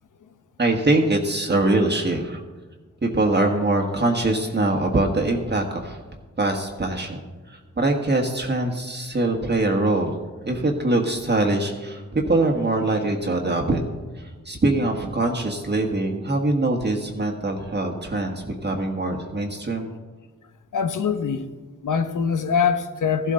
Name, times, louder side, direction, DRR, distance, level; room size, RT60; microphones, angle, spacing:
voice 1, 0.6-2.4 3.0-6.0 6.4-10.1 10.4-13.8 14.2-19.9, right 2 dB, 35° right, 1.4 m, -23 dB
voice 2, 20.7-21.5 21.8-23.3, left 6 dB, 75° left, 0.9 m, -23 dB
14.0 x 12.0 x 3.8 m
cardioid pair, 75°, 31 cm